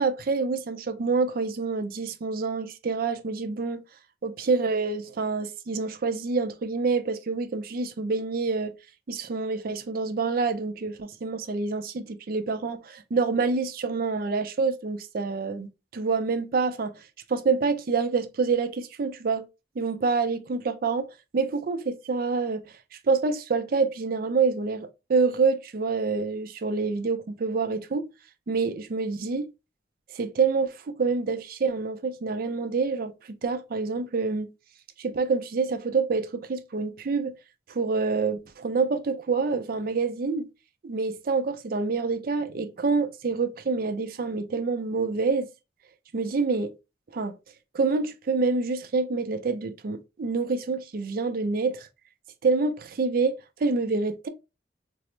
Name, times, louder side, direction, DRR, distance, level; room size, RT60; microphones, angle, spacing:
voice 1, 0.0-3.8 4.2-8.7 9.1-16.9 17.3-19.4 19.8-21.1 21.3-22.6 23.1-28.1 28.5-29.5 30.1-33.1 33.4-34.5 35.0-37.3 37.7-40.5 40.8-45.5 46.1-46.7 47.1-47.3 47.7-51.9 52.4-54.3, right 4 dB, 55° right, 0.4 m, -27 dB
4.0 x 2.0 x 3.0 m
head